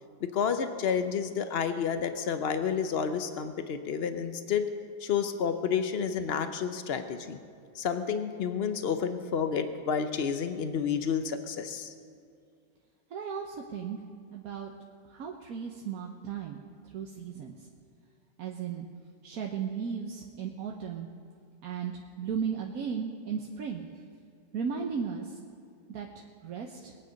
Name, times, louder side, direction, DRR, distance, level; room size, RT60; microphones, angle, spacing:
voice 1, 0.2-4.7 5.0-7.4 7.7-11.9, left 7 dB, 75° left, 9 dB, 0.5 m, -30 dB
voice 2, 13.1-14.0 14.3-14.7 15.1-17.6 18.4-18.9 19.2-21.1 21.6-23.9 24.5-25.4 25.9-27.0, right 6 dB, 60° right, 1 dB, 1.2 m, -36 dB
22.0 x 8.8 x 5.2 m, 2.4 s
omnidirectional pair, 2.0 m